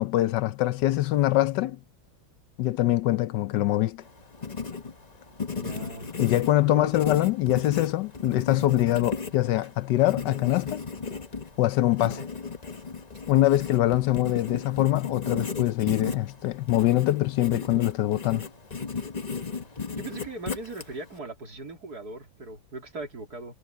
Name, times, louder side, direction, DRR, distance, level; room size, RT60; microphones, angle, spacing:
voice 1, 0.0-1.8 2.6-4.0 6.2-10.8 11.6-12.2 13.3-18.5, left 15 dB, 70° left, 1.1 m, -24 dB
Writing, 4.0-21.2, left 5 dB, 25° left, 1.1 m, -36 dB
voice 2, 5.6-6.2 6.7-7.1 12.2-12.3 20.0-23.5, right 3 dB, 50° right, 3.8 m, -39 dB
omnidirectional pair, 2.1 m